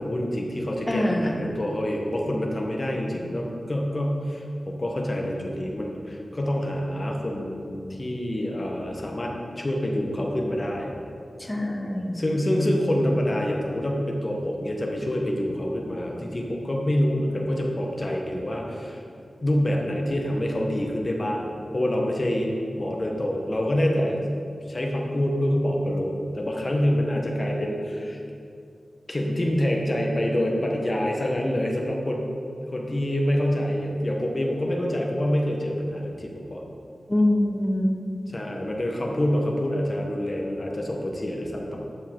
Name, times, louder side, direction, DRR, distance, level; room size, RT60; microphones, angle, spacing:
voice 1, 0.0-10.9 12.1-19.0 19.4-24.2 24.7-28.2 29.1-32.2 32.7-36.6 38.3-41.8, equal, 40° left, 0 dB, 1.4 m, -26 dB
voice 2, 0.9-1.5 11.4-12.2 37.1-37.9 38.3-38.4, left 1 dB, 20° left, 1 dB, 1.1 m, -24 dB
11.5 x 5.8 x 4.7 m, 2.4 s
wide cardioid pair, 65°, 0 cm